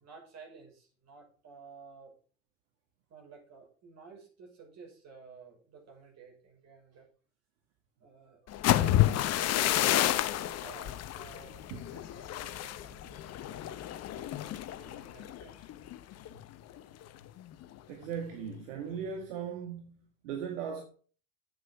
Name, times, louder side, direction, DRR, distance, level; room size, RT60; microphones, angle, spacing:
voice 1, 0.0-2.1 3.1-7.1 8.0-15.9, right 5 dB, 45° right, 6.3 m, -53 dB
sound 1, 8.5-16.3 16.7-17.0 17.4-17.8, left 13 dB, 40° left, 0.9 m, -30 dB
voice 2, 17.9-20.8, right 7 dB, 70° right, 1.9 m, -38 dB
9.4 x 8.8 x 4.7 m
hypercardioid pair, 80°, 38 cm